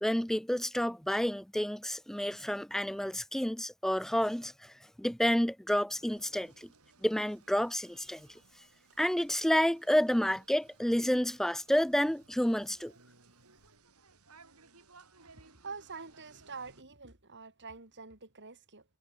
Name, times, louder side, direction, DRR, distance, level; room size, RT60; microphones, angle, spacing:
voice 1, 0.0-6.7 7.0-8.3 9.0-12.9, equal, ahead, 0.4 m, -30 dB
sound 1, 5.9-16.8, right 4 dB, 85° right, 6.9 m, -61 dB
voice 2, 15.2-18.8, right 4 dB, 55° right, 4.6 m, -46 dB
head